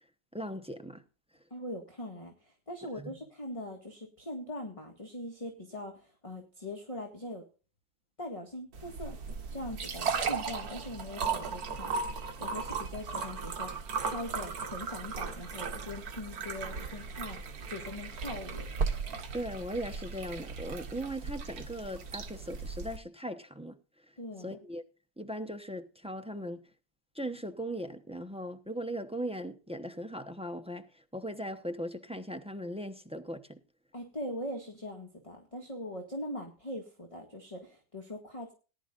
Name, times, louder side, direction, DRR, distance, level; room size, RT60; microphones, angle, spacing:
voice 1, 0.3-1.0 19.3-23.8 24.4-24.8 25.2-26.7 27.1-33.6, equal, 5° right, 0.7 m, -38 dB
voice 2, 1.5-7.4 8.2-9.2 9.5-11.9 12.4-18.7 24.2-24.6 33.9-38.5, left 1 dB, 20° left, 2.0 m, -41 dB
sound 1, 8.7-23.0, right 5 dB, 70° right, 1.8 m, -36 dB
18.5 x 11.0 x 2.5 m
omnidirectional pair, 1.7 m